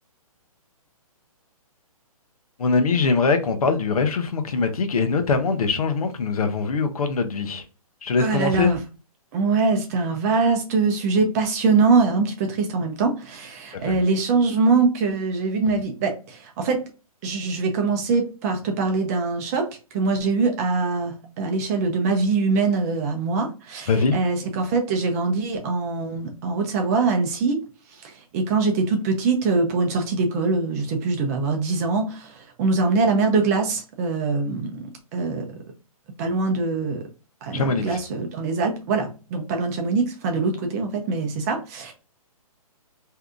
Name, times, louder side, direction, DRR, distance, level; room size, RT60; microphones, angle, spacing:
voice 1, 2.6-7.6 8.0-8.7 13.8-13.9 23.9-24.1 37.5-38.0, left 4 dB, 75° left, 0.7 m, -22 dB
voice 2, 8.2-8.8 9.3-16.8 17.2-19.7 19.9-27.6 28.0-35.5 36.2-37.1 37.4-41.9, right 4 dB, 25° right, 0.6 m, -23 dB
2.7 x 2.3 x 3.4 m
hypercardioid pair, 145°, 19 cm